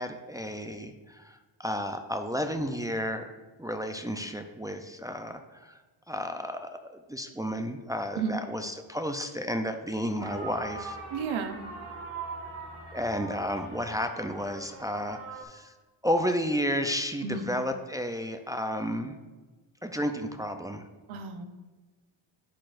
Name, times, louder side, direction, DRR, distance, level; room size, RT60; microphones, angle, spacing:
voice 1, 0.0-3.3 3.6-5.8 6.1-6.8 7.1-11.0 12.9-15.7 16.0-19.2 19.8-20.8, equal, 10° right, 5 dB, 0.4 m, -32 dB
sound 1, 10.2-15.4, right 3 dB, 30° right, 1.6 m, -41 dB
voice 2, 11.1-11.7 17.2-17.5 21.1-21.4, right 5 dB, 85° right, 7 dB, 0.8 m, -32 dB
11.5 x 4.6 x 2.5 m, 1.2 s
cardioid pair, 90°, 47 cm